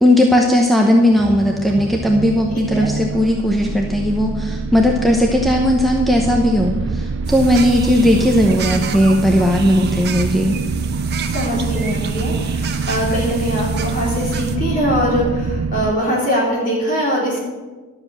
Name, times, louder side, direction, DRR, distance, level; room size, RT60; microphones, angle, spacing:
voice 1, 0.0-10.6, equal, ahead, 0 dB, 0.8 m, -16 dB
sound 1, 1.1-15.9, right 4 dB, 75° right, 0.4 m, -25 dB
voice 2, 2.5-2.9 11.3-17.4, equal, 40° left, -4 dB, 3.9 m, -22 dB
sound 2, 7.2-14.6, right 7 dB, 50° right, 1.1 m, -32 dB
12.0 x 7.6 x 6.6 m, 1.3 s
head